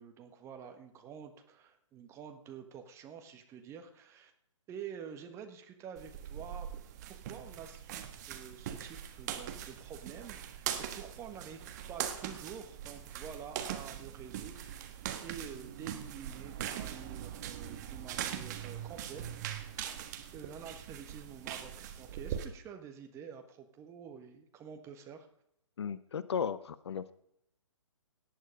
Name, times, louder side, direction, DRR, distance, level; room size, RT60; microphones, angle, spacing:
voice 1, 0.0-4.3 4.7-6.7 7.1-19.9 20.3-25.3, right 7 dB, 15° right, 6 dB, 1.4 m, -48 dB
sound 1, 6.0-22.5, right 10 dB, 35° right, 1.5 m, -41 dB
voice 2, 25.8-27.1, left 7 dB, 55° left, 15 dB, 0.9 m, -35 dB
18.0 x 9.7 x 5.2 m, 0.76 s
figure-of-eight pair, 135°, 17 cm